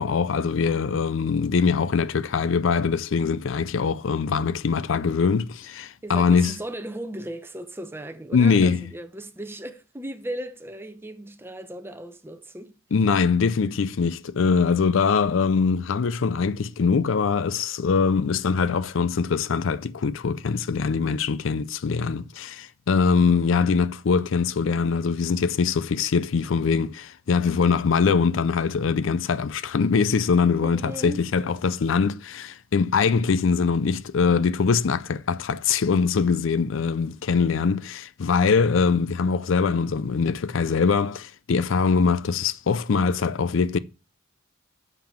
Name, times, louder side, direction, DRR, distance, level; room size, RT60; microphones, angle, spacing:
voice 1, 0.0-6.6 8.3-8.9 12.9-43.8, left 5 dB, 70° left, 0.4 m, -22 dB
voice 2, 6.0-12.7 30.6-31.2, right 1 dB, 10° right, 0.8 m, -36 dB
6.9 x 5.7 x 7.2 m
head